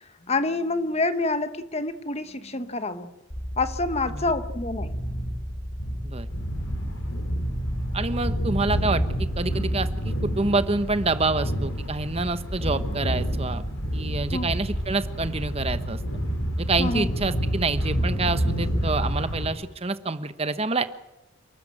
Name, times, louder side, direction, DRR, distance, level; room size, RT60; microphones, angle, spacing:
voice 1, 0.3-3.1 3.6-5.1 14.3-14.5 16.8-17.1, left 2 dB, 30° left, 1.1 m, -27 dB
sound 1, 3.3-9.3, equal, 50° left, 5.8 m, -33 dB
sound 2, 6.3-19.5, equal, 70° left, 4.3 m, -28 dB
voice 2, 7.9-13.6 13.9-16.0 16.6-20.8, right 3 dB, 30° right, 1.1 m, -27 dB
28.5 x 13.0 x 9.0 m
head